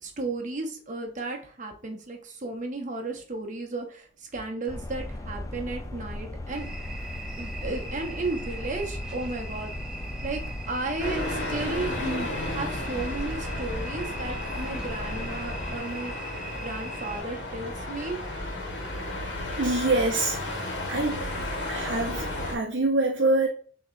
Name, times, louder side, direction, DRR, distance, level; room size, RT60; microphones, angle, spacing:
voice 1, 0.0-6.7 7.4-9.7 10.2-16.1 16.5-18.2, right 2 dB, 40° right, 0.9 m, -34 dB
sound 1, 4.7-15.8, left 1 dB, 15° left, 0.4 m, -37 dB
sound 2, 6.5-17.2, right 2 dB, 5° right, 0.8 m, -41 dB
sound 3, 11.0-22.5, left 1 dB, 70° left, 1.4 m, -33 dB
voice 2, 19.6-21.2 21.7-23.5, right 2 dB, 65° right, 0.6 m, -26 dB
6.1 x 2.8 x 2.5 m
head